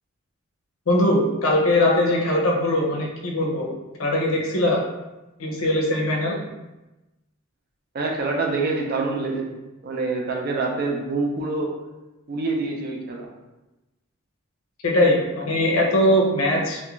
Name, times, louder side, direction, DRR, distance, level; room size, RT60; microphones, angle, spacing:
voice 1, 0.9-3.7 4.0-4.8 5.4-6.4 14.8-16.8, left 1 dB, 75° left, -1 dB, 0.6 m, -21 dB
voice 2, 7.9-9.6 9.8-11.7 12.3-13.3, right 3 dB, 45° right, 1 dB, 0.4 m, -26 dB
2.4 x 2.1 x 3.0 m, 1.0 s
head